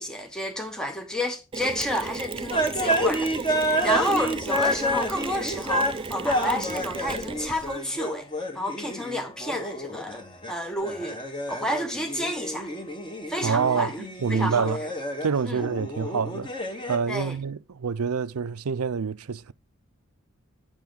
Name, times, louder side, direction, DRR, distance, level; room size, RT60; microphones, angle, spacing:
voice 1, 0.0-8.3 8.5-10.2 10.5-11.2 11.5-12.7 13.3-13.9 14.3-14.7 15.5-15.6 17.1-17.3, equal, 5° left, 0.8 m, -30 dB
Mechanisms, 1.5-7.8, right 4 dB, 25° right, 0.4 m, -35 dB
sound 1, 2.5-5.9 6.2-10.5 10.8-15.3 15.5-17.0, equal, 20° left, 1.5 m, -29 dB
voice 2, 13.4-14.8 15.2-16.5 16.9-19.5, right 6 dB, 90° right, 0.5 m, -27 dB
9.2 x 7.2 x 3.7 m
head